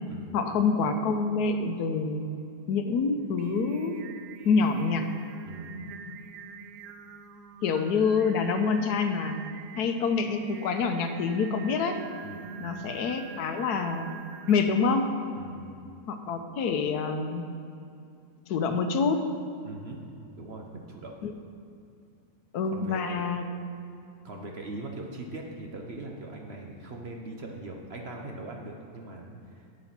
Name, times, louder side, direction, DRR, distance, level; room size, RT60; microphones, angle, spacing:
voice 1, 0.3-2.3 2.7-4.0 4.4-5.1 7.6-9.4 9.8-12.0 12.6-14.1 14.5-15.1 16.1-17.4 18.5-19.2 21.2-21.3 22.5-23.4, left 5 dB, 75° left, 7 dB, 1.2 m, -26 dB
Singing, 3.2-14.9, right 6 dB, 80° right, 1.2 m, -46 dB
voice 2, 5.4-6.0 12.2-12.8 15.3-15.8 19.6-20.0 20.4-21.2 22.6-23.2 24.2-29.7, right 2 dB, 50° right, 1 dB, 0.9 m, -41 dB
8.4 x 7.7 x 5.8 m, 2.5 s
omnidirectional pair, 1.7 m